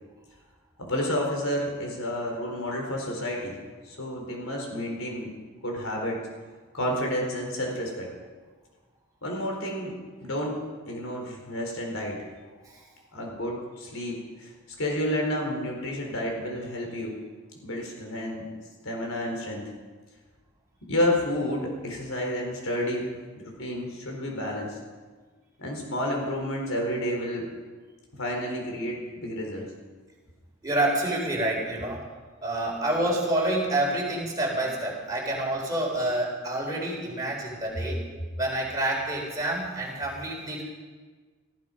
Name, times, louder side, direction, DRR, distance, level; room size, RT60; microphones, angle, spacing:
voice 1, 0.8-3.6 3.9-5.3 5.6-6.2 6.7-8.1 9.2-12.2 13.1-14.5 14.8-17.2 17.6-18.5 18.8-19.7 20.9-24.8 25.6-27.5 28.2-29.7, equal, 85° left, 1 dB, 4.3 m, -30 dB
voice 2, 30.6-32.0 32.4-38.0 38.4-40.6, right 1 dB, 15° right, -3 dB, 4.2 m, -28 dB
18.0 x 14.0 x 5.3 m, 1.4 s
head